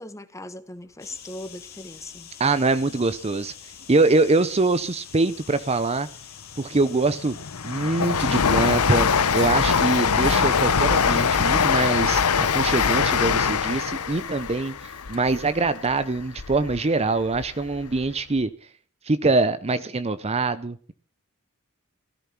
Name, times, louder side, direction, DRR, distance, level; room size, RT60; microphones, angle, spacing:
voice 1, 0.0-2.3, left 1 dB, 15° left, 12 dB, 1.3 m, -39 dB
sound 1, 1.0-11.6, left 9 dB, 45° left, 2.8 m, -45 dB
voice 2, 2.4-3.5 3.9-6.1 6.6-7.4 7.6-18.5 19.1-20.9, right 3 dB, 30° right, 14 dB, 0.6 m, -24 dB
Train, 6.6-16.8 17.2-18.1 18.4-18.5, left 6 dB, 85° left, 0.9 m, -23 dB
16.5 x 14.0 x 5.9 m, 0.44 s
head